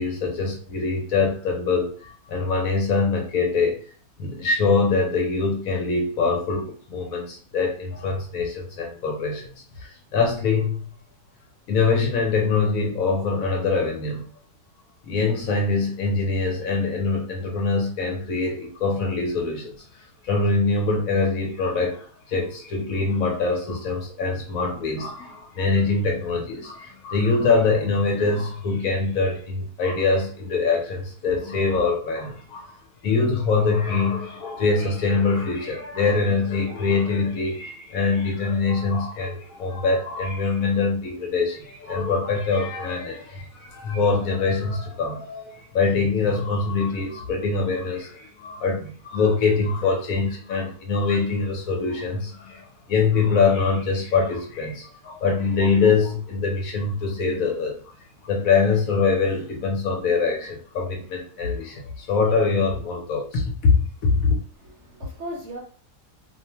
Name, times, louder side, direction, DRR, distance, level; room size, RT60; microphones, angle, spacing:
voice 1, 0.0-3.8 4.2-9.5 9.8-10.9 11.7-14.3 15.0-19.7 20.2-32.7 33.0-57.8 58.2-63.7 64.0-64.4, left 4 dB, 70° left, 1 dB, 1.0 m, -24 dB
voice 2, 64.2-65.6, equal, 55° right, -2 dB, 0.9 m, -38 dB
2.7 x 2.1 x 2.8 m, 0.43 s
omnidirectional pair, 1.7 m